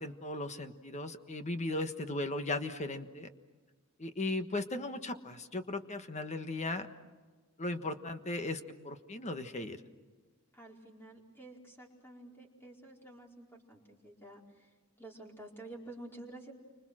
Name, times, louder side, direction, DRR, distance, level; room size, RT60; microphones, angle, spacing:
voice 1, 0.0-3.3 4.0-6.9 7.6-9.8, left 2 dB, 30° left, 8 dB, 1.4 m, -37 dB
voice 2, 10.5-14.7 15.0-16.5, right 2 dB, 10° left, -1 dB, 4.6 m, -50 dB
29.5 x 25.5 x 6.3 m, 1.4 s
head